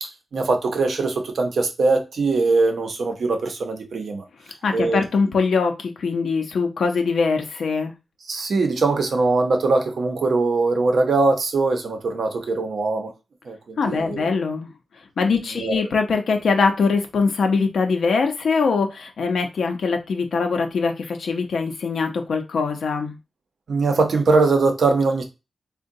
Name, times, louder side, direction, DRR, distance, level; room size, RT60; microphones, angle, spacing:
voice 1, 0.0-4.2 4.7-5.0 8.3-13.1 13.4-14.3 15.5-15.8 23.7-25.2, right 3 dB, 75° right, 0.7 m, -21 dB
voice 2, 4.6-7.9 13.8-14.7 15.2-23.2, left 4 dB, 85° left, 0.6 m, -22 dB
3.7 x 2.2 x 2.6 m
cardioid pair, 70°, 0 cm